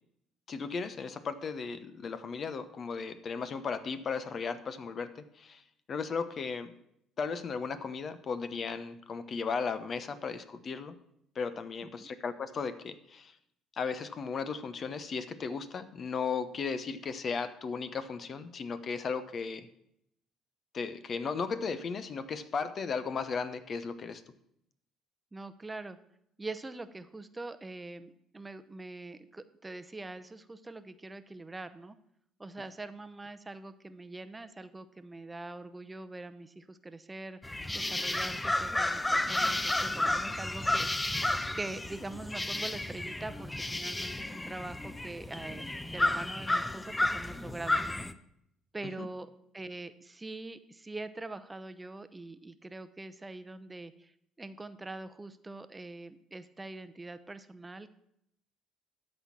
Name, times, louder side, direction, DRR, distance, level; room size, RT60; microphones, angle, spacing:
voice 1, 0.5-5.6 5.9-6.7 7.2-10.9 11.3-13.3 13.7-19.7 20.7-24.2 49.0-49.1, left 5 dB, 45° left, 12 dB, 0.9 m, -36 dB
voice 2, 25.3-26.0 26.4-32.0 32.4-41.1 41.5-48.1 48.7-54.1 54.4-57.9, right 2 dB, 20° right, 11 dB, 0.7 m, -43 dB
sound 1, 37.4-48.1, left 1 dB, 15° left, 0.7 m, -32 dB
12.5 x 4.4 x 7.4 m, 0.75 s
hypercardioid pair, 60°, 0 cm